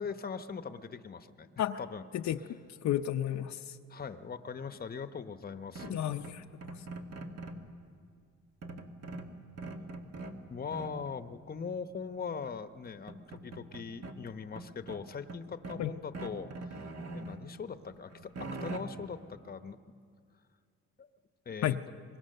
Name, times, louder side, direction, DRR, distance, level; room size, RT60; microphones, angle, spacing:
voice 1, 0.0-1.5 1.8-2.1 3.9-6.0 10.5-19.8 21.0-21.1 21.5-21.8, left 6 dB, 30° left, 10 dB, 0.9 m, -41 dB
voice 2, 2.8-3.8 5.8-6.4 6.7-6.8 15.8-15.9 21.6-21.8, left 11 dB, 65° left, 6 dB, 0.7 m, -32 dB
sound 1, 5.8-7.7 8.6-10.4 10.7-11.1 12.4-12.5 12.9-14.2 14.5-15.9 16.1-17.4 17.8-18.8, right 2 dB, 55° right, 2.0 m, -43 dB
24.5 x 21.5 x 6.7 m, 2.2 s
cardioid pair, 90°, 30 cm